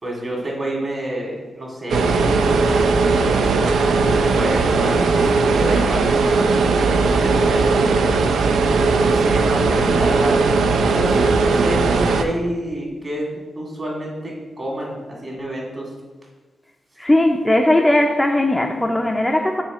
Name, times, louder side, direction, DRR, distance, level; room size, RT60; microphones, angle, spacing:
voice 1, 0.0-7.8 9.0-15.9, right 1 dB, 35° right, -3 dB, 2.0 m, -28 dB
sound 1, 1.9-12.2, right 4 dB, 90° right, 0.4 m, -18 dB
voice 2, 17.0-19.6, left 1 dB, 10° left, 3 dB, 0.4 m, -18 dB
6.9 x 3.1 x 5.0 m, 1.3 s
cardioid pair, 90°, 0 cm